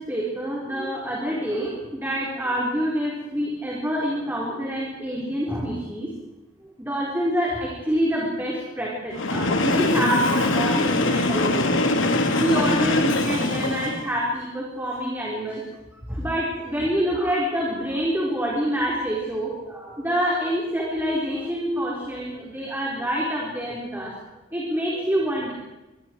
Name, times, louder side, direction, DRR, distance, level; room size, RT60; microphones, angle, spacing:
voice 1, 0.0-6.1 6.8-11.7 12.3-15.6 16.1-24.2 24.5-25.5, equal, 10° right, -4 dB, 4.5 m, -26 dB
Train, 9.1-14.1, left 2 dB, 75° left, 2.9 m, -22 dB
27.5 x 22.5 x 4.8 m, 1.0 s
head